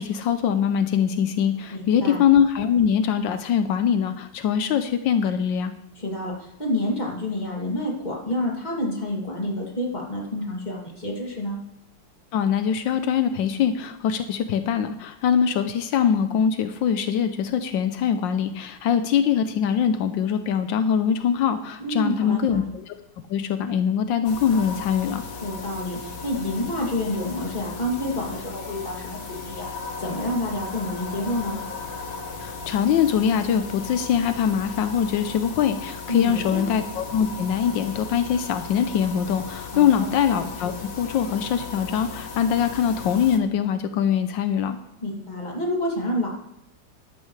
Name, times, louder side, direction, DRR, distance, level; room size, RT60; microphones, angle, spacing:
voice 1, 0.0-5.7 12.3-22.9 23.3-25.2 32.4-44.8, left 8 dB, 85° left, 9 dB, 1.4 m, -23 dB
voice 2, 1.7-2.2 6.0-11.6 21.8-22.6 25.4-29.7 30.0-31.6 36.1-36.6 39.7-40.1 45.0-46.3, left 1 dB, 25° left, -2 dB, 2.7 m, -28 dB
sound 1, 24.2-43.4, left 4 dB, 65° left, 1.9 m, -36 dB
15.0 x 11.5 x 3.3 m, 0.86 s
omnidirectional pair, 2.0 m